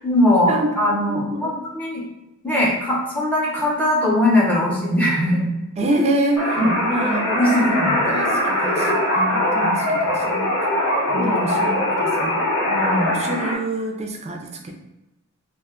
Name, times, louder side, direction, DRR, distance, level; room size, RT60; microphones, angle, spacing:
voice 1, 0.0-2.0 2.4-5.5 6.6-6.7 7.3-7.9 9.6-9.7 11.1-11.5 12.7-13.2, left 1 dB, 5° left, -5 dB, 0.6 m, -20 dB
voice 2, 1.1-1.6 5.8-10.7 11.1-12.5 13.1-14.7, right 1 dB, 30° right, 2 dB, 0.4 m, -26 dB
sound 1, 6.4-13.5, left 1 dB, 75° left, 0.6 m, -21 dB
2.5 x 2.2 x 3.5 m, 0.98 s
head